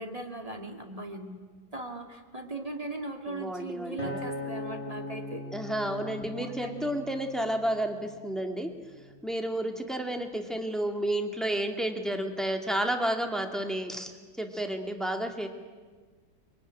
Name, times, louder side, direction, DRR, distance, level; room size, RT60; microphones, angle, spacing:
voice 1, 0.0-1.4 1.7-5.4 6.0-6.9, right 2 dB, 20° right, 3 dB, 2.1 m, -39 dB
voice 2, 3.3-4.2 5.5-8.7 9.2-14.1 14.4-15.5, right 1 dB, ahead, 4 dB, 1.8 m, -31 dB
Acoustic guitar, 4.0-8.3 8.9-9.2, left 1 dB, 30° left, 4.3 m, -40 dB
23.0 x 22.0 x 10.0 m, 1.5 s
omnidirectional pair, 2.2 m